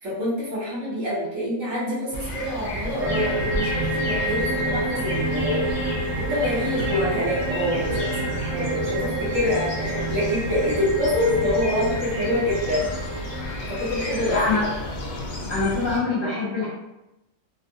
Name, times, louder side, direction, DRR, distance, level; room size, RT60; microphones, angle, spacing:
voice 1, 0.0-5.7 6.2-12.8 13.7-14.4, left 1 dB, 60° right, -8 dB, 1.3 m, -26 dB
sound 1, 2.1-16.0, left 1 dB, 65° left, 0.4 m, -33 dB
sound 2, 3.0-14.5, right 1 dB, 80° right, 1.2 m, -28 dB
voice 2, 6.9-7.3 8.5-9.0 14.2-14.7 15.5-16.7, left 3 dB, 40° left, -10 dB, 1.2 m, -26 dB
3.5 x 2.2 x 2.6 m, 0.93 s
omnidirectional pair, 1.5 m